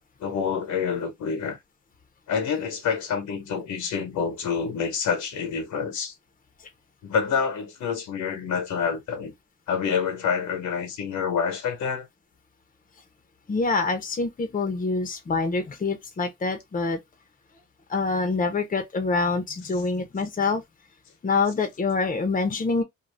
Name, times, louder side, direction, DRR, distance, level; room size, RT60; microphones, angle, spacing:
voice 1, 0.2-1.6 2.3-6.1 7.0-9.3 9.7-12.1, left 6 dB, 75° left, 1.1 m, -27 dB
voice 2, 13.5-17.0 17.9-20.6 21.2-22.8, left 3 dB, 25° left, 0.8 m, -25 dB
2.6 x 2.3 x 3.2 m
cardioid pair, 90°, 30 cm